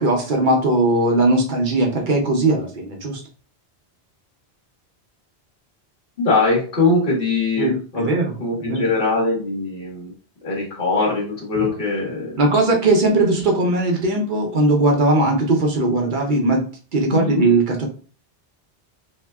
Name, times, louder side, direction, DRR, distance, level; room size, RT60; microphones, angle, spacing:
voice 1, 0.0-3.2 7.6-8.9 12.4-16.7 16.9-17.9, right 2 dB, 55° right, 1 dB, 0.7 m, -19 dB
voice 2, 6.2-8.1 8.4-10.1 10.4-12.4 17.1-17.4, left 3 dB, 55° left, -3 dB, 1.3 m, -21 dB
2.8 x 2.1 x 3.3 m, 0.39 s
omnidirectional pair, 1.1 m